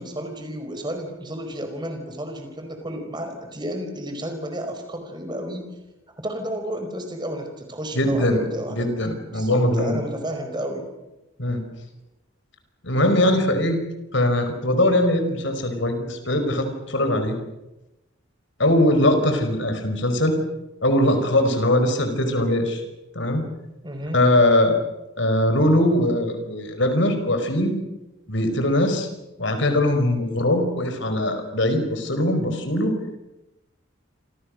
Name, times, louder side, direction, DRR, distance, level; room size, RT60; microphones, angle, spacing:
voice 1, 0.0-5.7 6.2-8.9 9.2-10.9 23.8-24.2, right 1 dB, 20° right, 6 dB, 4.9 m, -32 dB
voice 2, 7.9-8.4 8.7-10.0 11.4-11.6 12.8-13.8 14.1-17.3 18.6-20.4 20.8-22.8 23.1-23.4 24.1-24.8 25.2-27.8 28.3-29.1 29.4-32.9, left 1 dB, 65° left, 7 dB, 5.0 m, -21 dB
29.0 x 26.0 x 6.6 m, 0.97 s
head